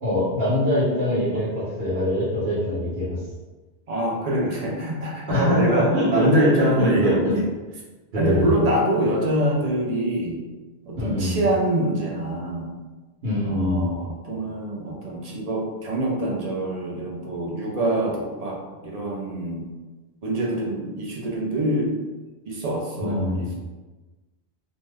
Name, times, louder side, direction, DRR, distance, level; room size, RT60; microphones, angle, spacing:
voice 1, 0.0-3.2 5.3-7.4 8.1-8.5 11.0-11.4 13.2-13.9 23.0-23.5, left 1 dB, 85° right, -9 dB, 1.1 m, -23 dB
voice 2, 3.9-7.4 8.2-10.4 10.8-12.7 13.4-19.6 20.2-21.9 22.5-23.5, right 1 dB, 45° right, -2 dB, 0.6 m, -25 dB
2.6 x 2.2 x 3.2 m, 1.2 s
omnidirectional pair, 1.0 m